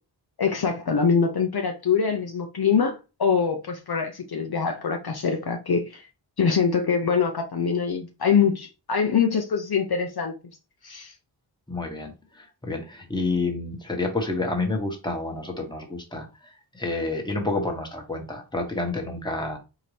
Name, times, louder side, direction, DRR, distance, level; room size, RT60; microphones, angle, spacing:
voice 1, 0.4-6.1 6.4-10.3 10.8-11.1, left 6 dB, 55° left, 0.8 m, -24 dB
voice 2, 11.7-19.6, left 2 dB, 10° left, 1.3 m, -29 dB
4.3 x 3.8 x 3.3 m
wide cardioid pair, 105°, 44 cm